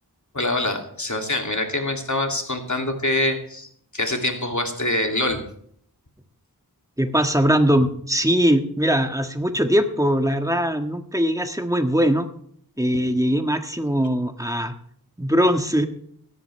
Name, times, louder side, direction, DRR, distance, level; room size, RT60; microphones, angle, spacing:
voice 1, 0.3-3.7 3.9-5.4, left 1 dB, 50° left, 3 dB, 2.6 m, -25 dB
voice 2, 7.0-12.3 12.8-14.7 15.2-15.9, equal, 10° right, 6 dB, 1.5 m, -21 dB
17.5 x 13.5 x 3.3 m, 0.64 s
wide cardioid pair, 45°, 38 cm